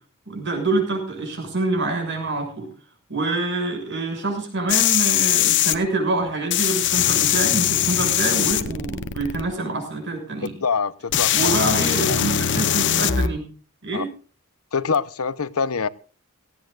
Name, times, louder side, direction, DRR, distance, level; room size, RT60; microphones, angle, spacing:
voice 1, 0.3-2.7 3.1-10.6 11.3-13.5 13.8-14.1, right 2 dB, 55° right, 6.7 m, -26 dB
sound 1, 4.7-5.8 6.5-9.4 10.5-10.6 11.1-13.3 14.9-15.0, left 10 dB, 55° left, 0.9 m, -21 dB
voice 2, 10.4-11.6 12.1-12.2 13.9-14.0 14.7-15.9, left 5 dB, 80° left, 0.8 m, -25 dB
18.5 x 16.5 x 2.5 m
head